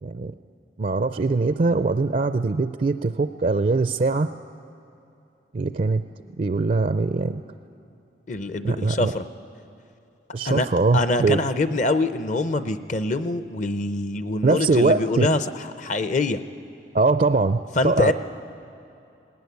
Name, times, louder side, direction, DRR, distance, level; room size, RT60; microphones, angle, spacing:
voice 1, 0.0-0.3 0.8-4.3 5.5-6.0 6.4-7.4 8.6-9.1 10.3-11.4 14.4-15.3 16.9-18.1, right 3 dB, 45° right, 11 dB, 0.4 m, -22 dB
voice 2, 8.3-9.2 10.4-10.7 10.9-15.4 15.8-16.4 17.8-18.1, left 2 dB, 40° left, 11 dB, 0.6 m, -24 dB
19.0 x 17.0 x 9.5 m, 2.7 s
head